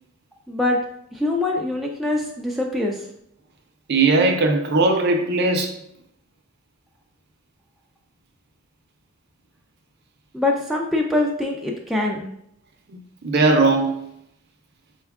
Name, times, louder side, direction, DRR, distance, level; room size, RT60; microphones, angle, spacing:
voice 1, 0.5-0.8 1.1-3.1 10.3-12.2, left 2 dB, ahead, -1 dB, 0.3 m, -23 dB
voice 2, 3.9-5.7 12.9-14.1, right 3 dB, 50° right, 4 dB, 0.5 m, -19 dB
4.3 x 2.3 x 3.4 m, 0.72 s
head